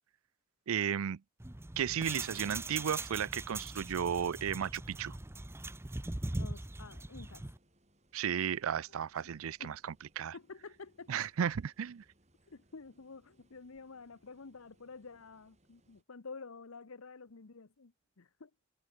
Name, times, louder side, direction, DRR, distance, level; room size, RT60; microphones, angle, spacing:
voice 1, 0.7-1.2 1.8-5.2 8.1-9.8 10.2-10.3 11.1-12.0, right 8 dB, 80° right, 0.4 m, -34 dB
sound 1, 1.4-7.6, right 2 dB, 10° right, 0.6 m, -41 dB
sound 2, 5.3-16.0, right 1 dB, 30° right, 6.2 m, -71 dB
voice 2, 6.3-7.4 8.9-9.0 9.6-9.7 10.3-11.3 12.5-18.5, left 4 dB, 80° left, 0.9 m, -50 dB
head